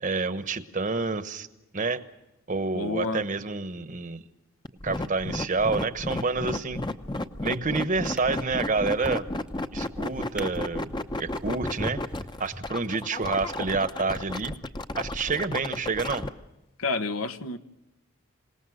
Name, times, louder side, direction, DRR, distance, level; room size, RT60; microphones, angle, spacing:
voice 1, 0.0-1.5 1.7-2.0 2.5-4.2 4.8-6.8 7.4-9.2 9.7-12.0 12.4-14.5 15.0-16.2, right 4 dB, 40° right, 12 dB, 1.1 m, -28 dB
voice 2, 2.7-3.2 16.8-17.6, left 3 dB, 90° left, 10 dB, 1.2 m, -29 dB
sound 1, 4.6-16.3, left 2 dB, 20° left, 0.8 m, -32 dB
Drawer open or close, 7.0-7.4 8.0-13.1 13.8-14.0, equal, 5° right, 1.0 m, -43 dB
27.0 x 18.5 x 6.4 m, 0.96 s
head